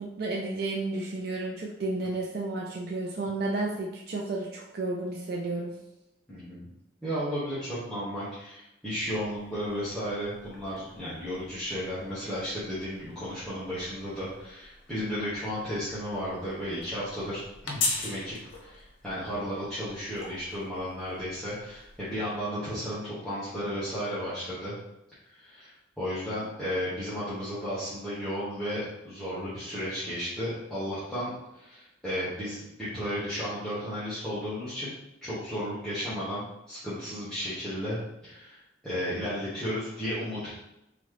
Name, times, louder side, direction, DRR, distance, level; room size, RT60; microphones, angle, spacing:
voice 1, 0.0-5.7, right 2 dB, 55° right, -2 dB, 0.5 m, -32 dB
voice 2, 6.3-6.7 7.0-24.7 25.3-34.9 35.2-38.0 38.2-40.5, equal, 5° left, -14 dB, 1.2 m, -34 dB
sound 1, 9.0-22.4, left 3 dB, 90° left, 0.7 m, -41 dB
3.8 x 3.1 x 3.2 m, 0.88 s
head